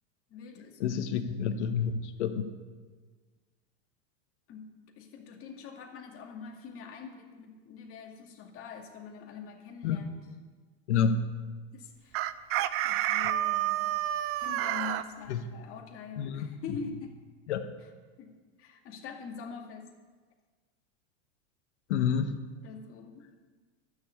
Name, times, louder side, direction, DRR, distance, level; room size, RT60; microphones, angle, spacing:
voice 1, 0.3-1.0 4.5-10.1 11.7-12.3 12.8-13.9 14.4-17.2 18.2-19.9 22.6-23.5, left 5 dB, 40° left, 1 dB, 2.3 m, -44 dB
voice 2, 0.8-2.5 9.8-10.0 10.9-11.3 15.3-15.5 16.2-16.6 17.5-17.7 21.9-22.3, left 6 dB, 80° left, 7 dB, 1.3 m, -29 dB
Chicken rooster, 12.1-15.0, right 13 dB, 40° right, 0.6 m, -29 dB
12.5 x 7.2 x 8.5 m, 1.4 s
supercardioid pair, 125°, 34 cm